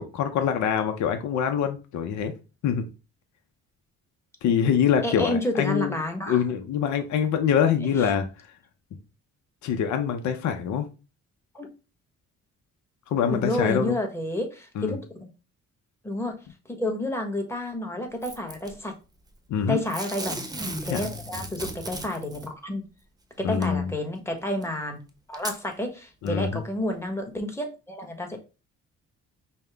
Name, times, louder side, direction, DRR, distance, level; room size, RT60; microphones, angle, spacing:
voice 1, 0.0-2.3 2.6-2.9 4.4-6.0 6.3-8.3 9.6-10.9 13.1-14.0 14.8-15.0 19.5-19.8 20.9-21.0 23.4-23.9 26.2-26.6, left 8 dB, 70° left, 6 dB, 0.7 m, -24 dB
voice 2, 5.0-6.4 8.0-8.1 11.5-11.7 13.3-15.3 16.0-16.4 16.7-18.9 19.7-20.4 20.8-22.8 23.4-25.0 25.3-28.4, left 1 dB, 10° left, 3 dB, 1.2 m, -30 dB
Packing tape duct tape / Tearing, 18.2-18.7 19.9-22.5 23.6-23.7 24.6-24.7 25.3-25.6 26.3-26.4, right 1 dB, 15° right, 0.8 m, -35 dB
5.5 x 2.1 x 3.3 m, 0.31 s
cardioid pair, 90°, 30 cm